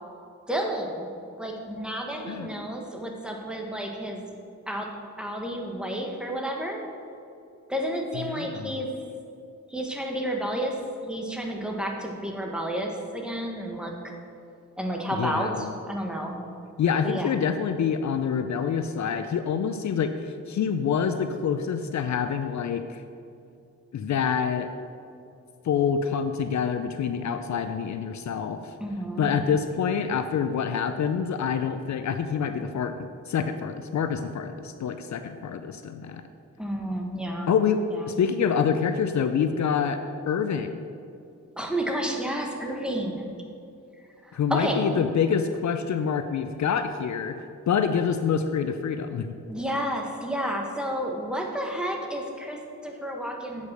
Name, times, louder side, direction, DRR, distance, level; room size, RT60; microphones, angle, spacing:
voice 1, 0.5-1.1 1.4-4.2 4.7-4.9 5.2-6.8 7.7-8.9 9.7-13.9 14.8-16.4 17.0-17.3 28.8-29.3 36.6-37.5 37.9-38.2 41.6-43.3 44.2-44.9 49.5-53.7, right 1 dB, 5° right, 0 dB, 1.4 m, -31 dB
voice 2, 8.1-8.8 15.2-15.7 16.8-23.0 23.9-24.7 25.6-28.7 29.2-36.2 37.5-37.8 38.1-40.0 40.3-40.8 44.3-47.4 47.7-49.3, left 7 dB, 65° left, 8 dB, 0.5 m, -26 dB
8.2 x 5.3 x 6.2 m, 2.6 s
cardioid pair, 75°, 31 cm